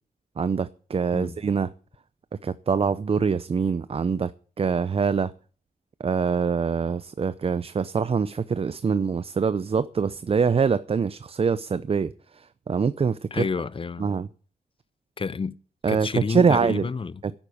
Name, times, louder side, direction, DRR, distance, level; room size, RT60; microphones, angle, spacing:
voice 1, 0.4-1.7 2.4-4.3 4.6-5.3 6.0-13.4 14.0-14.3 15.8-16.8 17.2-17.3, right 5 dB, 40° right, 0.6 m, -24 dB
voice 2, 13.3-14.1 15.2-15.5 15.9-17.4, left 5 dB, 35° left, 0.7 m, -30 dB
11.5 x 9.2 x 8.4 m
wide cardioid pair, 120°, 15 cm